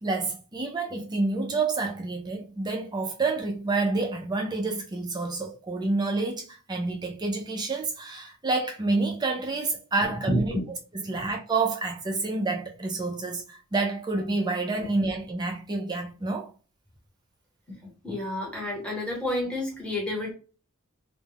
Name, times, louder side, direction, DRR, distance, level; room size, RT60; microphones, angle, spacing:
voice 1, 0.0-10.5 11.1-16.5, right 3 dB, 20° right, 0.4 m, -28 dB
voice 2, 10.3-10.6 11.1-11.2 17.7-17.8 18.0-20.3, left 1 dB, 5° left, 0.9 m, -29 dB
2.2 x 2.1 x 3.3 m
head